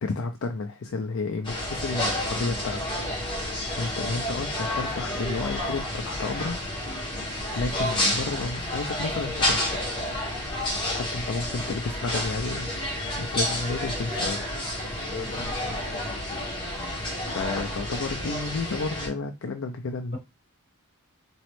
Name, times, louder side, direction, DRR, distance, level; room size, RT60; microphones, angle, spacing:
voice 1, 0.0-2.8 3.8-6.6 7.5-9.7 10.9-12.7 13.2-14.4 17.2-20.2, left 3 dB, 65° left, 0.5 m, -31 dB
sound 1, 1.4-19.1, left 1 dB, 20° left, 1.4 m, -30 dB
voice 2, 15.1-16.2 20.1-20.2, left 3 dB, 50° left, 1.2 m, -38 dB
4.0 x 3.0 x 3.1 m
head